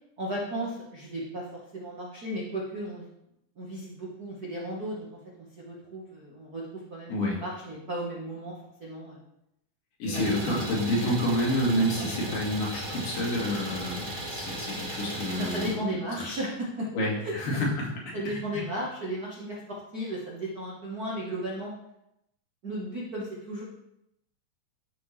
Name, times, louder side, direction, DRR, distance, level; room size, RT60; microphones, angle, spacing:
voice 1, 0.2-1.4 1.7-3.0 3.6-5.1 5.4-6.6 6.9-7.1 7.4-8.5 8.8-9.2 10.1-10.6 15.3-16.9 17.2-17.3 18.1-21.7 22.6-23.6, right 1 dB, 75° right, -4 dB, 0.8 m, -35 dB
voice 2, 7.1-7.4 10.0-16.0 16.9-18.6, left 1 dB, 75° left, -4 dB, 3.7 m, -29 dB
Idling, 10.1-15.7, right 1 dB, 25° right, 1.0 m, -36 dB
12.0 x 5.6 x 3.3 m, 0.82 s
omnidirectional pair, 3.9 m